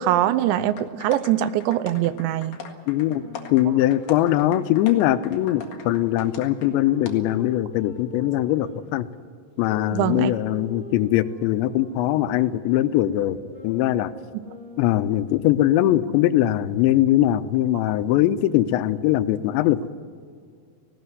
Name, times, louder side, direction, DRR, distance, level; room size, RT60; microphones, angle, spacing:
voice 1, 0.0-2.6 9.9-10.3, right 12 dB, 85° right, 14 dB, 3.1 m, -22 dB
sound 1, 0.8-6.7 7.0-7.1, left 7 dB, 55° left, 2.8 m, -41 dB
voice 2, 2.9-3.2 3.5-9.1 9.6-13.4 13.6-14.1 14.8-19.9, left 13 dB, 90° left, 13 dB, 3.0 m, -21 dB
Wind instrument woodwind instrument, 2.9-8.8 9.5-15.3, left 1 dB, 40° right, 7.0 m, -43 dB
18.5 x 17.5 x 9.6 m, 2.1 s
omnidirectional pair, 5.0 m